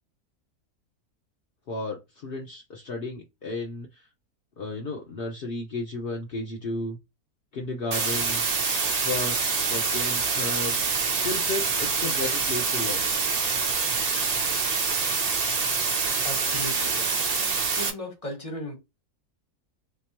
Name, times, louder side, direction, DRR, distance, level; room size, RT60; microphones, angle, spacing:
voice 1, 1.7-4.1 4.6-7.0 7.5-8.4 9.0-10.8 11.2-13.0, left 2 dB, 55° left, 0.7 m, -33 dB
sound 1, 7.9-17.9, right 5 dB, 60° right, 0.4 m, -26 dB
voice 2, 16.2-17.5 17.7-18.8, equal, 25° left, 1.2 m, -37 dB
3.3 x 2.9 x 2.9 m
omnidirectional pair, 1.6 m